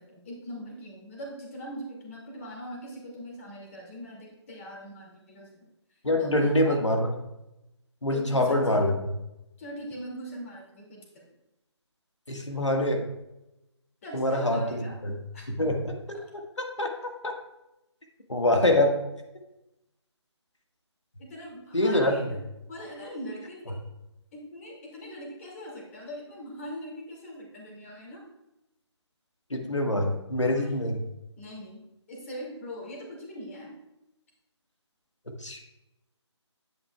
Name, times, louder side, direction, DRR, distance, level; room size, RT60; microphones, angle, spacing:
voice 1, 0.0-5.6 6.2-6.7 8.1-8.9 9.6-11.0 14.0-14.9 15.3-15.4 16.1-16.2 21.2-22.4 22.7-23.8 24.3-28.2 30.5-30.9 31.4-31.8 32.1-33.7, equal, 30° left, -2 dB, 2.4 m, -41 dB
voice 2, 6.0-7.1 8.0-9.0 12.3-13.0 14.1-15.2 15.5-16.2 16.6-16.9 17.2-17.3 18.3-19.0 21.7-22.1 29.5-31.0 35.4-35.6, left 1 dB, 80° left, 3 dB, 1.7 m, -25 dB
9.9 x 8.7 x 2.4 m, 0.91 s
figure-of-eight pair, 150°, 15 cm